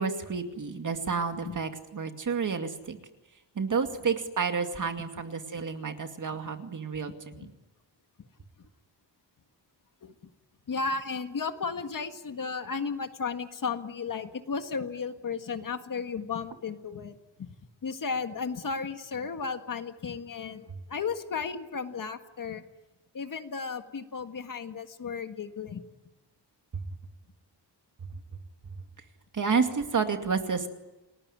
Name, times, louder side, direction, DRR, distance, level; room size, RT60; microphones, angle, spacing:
voice 1, 0.0-3.0 3.6-7.5 26.7-26.8 29.3-30.7, right 5 dB, 45° right, 6 dB, 2.4 m, -30 dB
voice 2, 10.7-17.5 17.8-22.6 23.1-25.8, left 5 dB, 50° left, 7 dB, 1.8 m, -34 dB
29.5 x 20.0 x 9.9 m, 1.0 s
wide cardioid pair, 175°, 43 cm